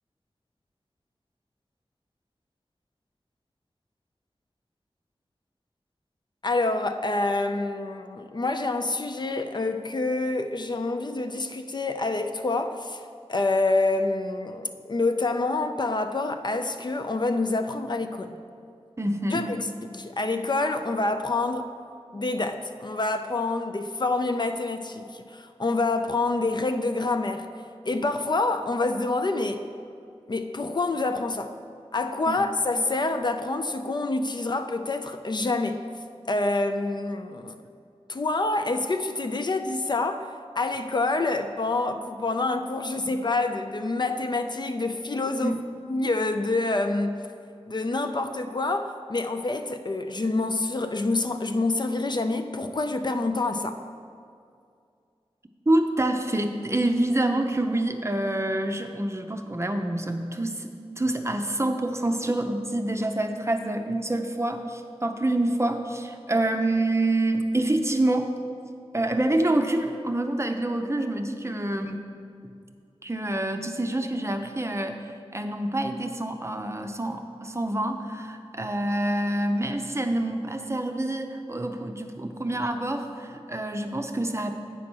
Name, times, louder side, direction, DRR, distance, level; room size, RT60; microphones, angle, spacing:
voice 1, 6.4-13.0 13.3-18.4 19.3-19.7 19.9-21.7 22.1-27.5 27.9-29.7 30.3-31.5 31.9-35.9 36.3-37.6 38.1-40.3 40.6-45.6 45.9-47.2 47.7-53.8, left 2 dB, 45° left, 7 dB, 0.4 m, -27 dB
voice 2, 19.0-19.4 32.3-32.4 45.4-45.6 55.7-60.7 61.0-68.3 68.9-72.1 73.0-84.5, right 1 dB, 25° right, 5 dB, 0.6 m, -27 dB
8.5 x 4.2 x 6.1 m, 2.4 s
wide cardioid pair, 65°, 11 cm